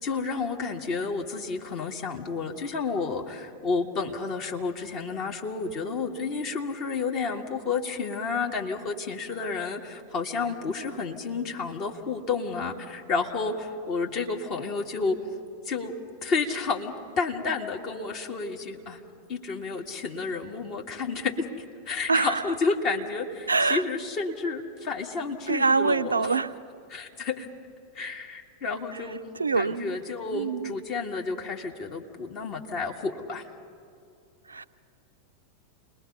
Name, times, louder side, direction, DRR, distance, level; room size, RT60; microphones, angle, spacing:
voice 1, 0.0-15.2 15.7-15.9 16.2-19.0 19.3-21.5 21.9-26.3 26.9-27.5 27.9-29.2 29.5-33.4, left 4 dB, 40° left, 1 dB, 2.1 m, -31 dB
voice 2, 22.1-22.4 23.5-23.8 25.5-26.5 29.3-30.0 30.3-30.8 34.5-34.6, right 4 dB, 80° right, 12 dB, 0.6 m, -24 dB
29.0 x 21.0 x 5.5 m, 2.4 s
figure-of-eight pair, 90°, 0 cm